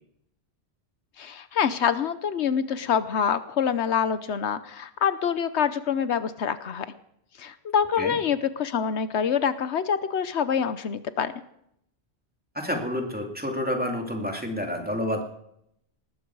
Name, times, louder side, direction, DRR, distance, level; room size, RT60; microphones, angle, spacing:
voice 1, 1.2-6.9 7.4-11.3, left 7 dB, 80° left, 13 dB, 1.1 m, -26 dB
voice 2, 12.5-15.3, left 1 dB, 10° right, 2 dB, 2.6 m, -29 dB
19.0 x 14.0 x 4.7 m, 0.74 s
omnidirectional pair, 1.1 m